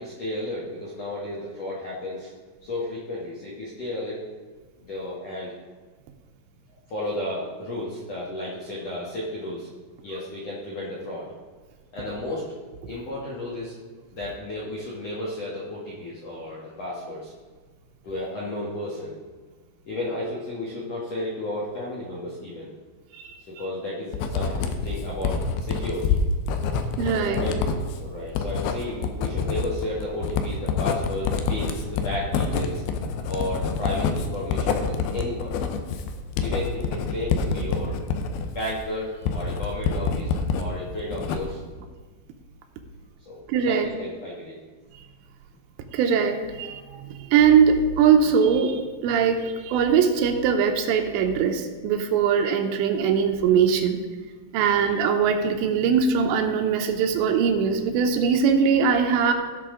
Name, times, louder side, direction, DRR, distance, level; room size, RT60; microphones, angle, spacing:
voice 1, 0.0-2.3 2.6-4.2 4.9-5.5 6.9-9.7 10.0-11.3 11.9-12.4 12.9-13.8 14.1-17.3 18.0-19.1 19.9-22.7 23.6-26.2 27.1-27.6 28.0-32.8 33.3-35.6 36.4-38.0 38.5-41.6 43.2-44.6, left 1 dB, 65° left, -7 dB, 1.6 m, -33 dB
voice 2, 23.1-23.6 27.0-27.4 43.5-43.9 45.9-54.0 54.5-59.3, right 6 dB, 80° right, 5 dB, 3.0 m, -21 dB
Writing, 24.1-40.7 41.0-41.7, left 5 dB, 80° left, 2.2 m, -27 dB
17.0 x 5.9 x 3.8 m, 1.4 s
omnidirectional pair, 5.2 m